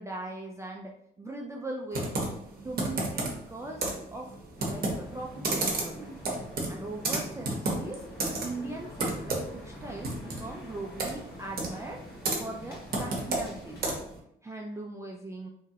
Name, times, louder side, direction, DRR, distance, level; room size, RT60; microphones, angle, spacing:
voice 1, 0.0-3.8 4.1-4.4 4.7-6.2 6.7-8.1 8.4-12.0 12.4-14.0 14.4-15.5, right 2 dB, 15° right, -1 dB, 0.3 m, -40 dB
Computer keyboard, 1.9-14.2, right 2 dB, 50° right, 0.8 m, -33 dB
sound 1, 4.6-14.0, left 1 dB, 55° left, 1.2 m, -46 dB
2.9 x 2.3 x 2.7 m, 0.75 s
cardioid pair, 90°, 20 cm